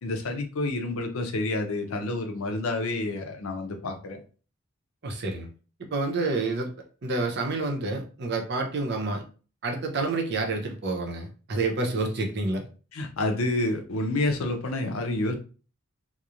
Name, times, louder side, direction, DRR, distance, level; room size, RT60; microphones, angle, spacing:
voice 1, 0.0-4.2 12.9-15.3, left 2 dB, 90° left, 5 dB, 0.6 m, -29 dB
voice 2, 5.0-5.5 5.9-6.7 7.0-9.2 9.6-12.7, right 3 dB, 55° right, 3 dB, 0.6 m, -28 dB
2.9 x 2.1 x 2.4 m, 0.37 s
head